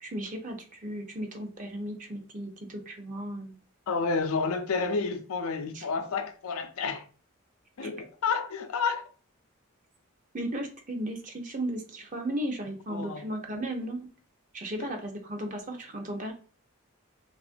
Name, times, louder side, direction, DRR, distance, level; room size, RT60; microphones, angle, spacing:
voice 1, 0.0-3.6 5.7-5.9 7.8-7.9 10.3-14.1 14.5-16.3, right 1 dB, 35° right, 0.5 m, -35 dB
voice 2, 3.9-7.1 7.8-9.1 12.9-13.2 14.8-14.9, left 4 dB, 85° left, 0.4 m, -30 dB
2.9 x 2.4 x 2.5 m
head